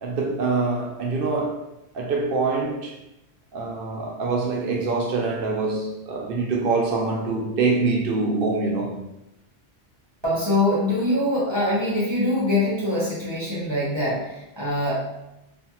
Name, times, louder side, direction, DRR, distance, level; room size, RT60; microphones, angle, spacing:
voice 1, 0.0-1.7 1.9-3.0 3.5-9.0, right 3 dB, 65° right, 0.7 m, -25 dB
voice 2, 10.2-14.9, left 1 dB, 30° right, 0.7 m, -23 dB
2.5 x 2.4 x 2.8 m
omnidirectional pair, 1.1 m